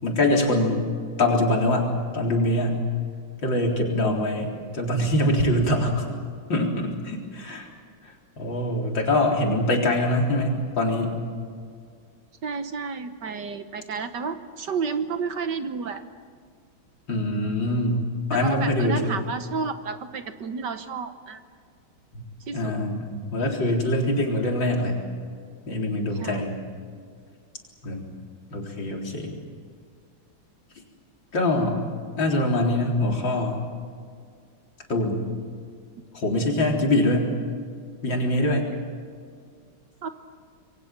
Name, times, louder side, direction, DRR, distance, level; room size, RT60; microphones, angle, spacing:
voice 1, 0.0-0.8 1.2-2.8 3.4-6.0 6.5-7.7 8.4-11.2 17.1-18.0 18.3-19.2 22.5-24.9 25.7-26.5 27.8-28.0 28.5-29.3 31.3-31.8 32.2-33.6 34.9-35.2 36.1-37.3 38.0-38.7, left 1 dB, 60° left, 0 dB, 4.6 m, -24 dB
voice 2, 3.9-4.4 12.4-16.0 18.3-21.4 22.5-22.7 26.1-26.4 40.0-40.1, right 5 dB, 60° right, 9 dB, 1.6 m, -31 dB
27.0 x 23.0 x 7.5 m, 2.1 s
omnidirectional pair, 2.3 m